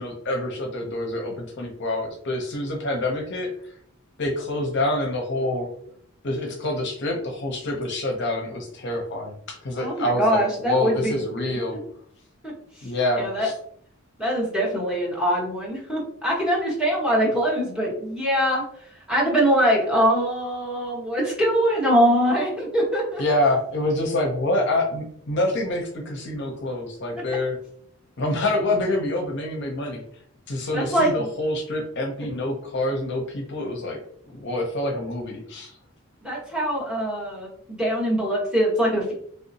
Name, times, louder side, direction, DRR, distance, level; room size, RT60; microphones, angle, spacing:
voice 1, 0.0-3.5 4.2-5.7 6.2-11.8 12.8-13.5 23.2-27.6 28.2-30.0 30.5-34.0 34.4-35.7, left 1 dB, 55° left, 2 dB, 0.6 m, -26 dB
voice 2, 9.8-11.8 12.4-12.5 13.2-13.5 14.2-18.6 19.1-23.2 30.7-31.3 36.2-39.1, equal, 5° right, -5 dB, 1.1 m, -23 dB
3.3 x 2.7 x 2.7 m, 0.64 s
head